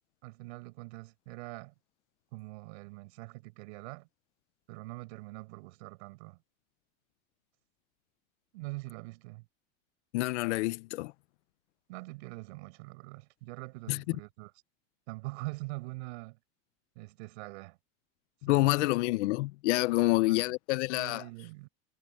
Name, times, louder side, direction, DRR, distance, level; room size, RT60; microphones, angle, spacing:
voice 1, 0.2-1.7 2.3-4.1 4.7-6.4 8.5-9.4 11.9-14.5 15.1-16.4 16.9-17.8 18.5-18.9 20.0-20.4 20.9-21.7, right 24 dB, 55° right, 6.2 m, -44 dB
voice 2, 10.1-11.1 13.9-14.2 18.4-21.2, left 20 dB, 60° left, 0.6 m, -28 dB
supercardioid pair, 170°, 39 cm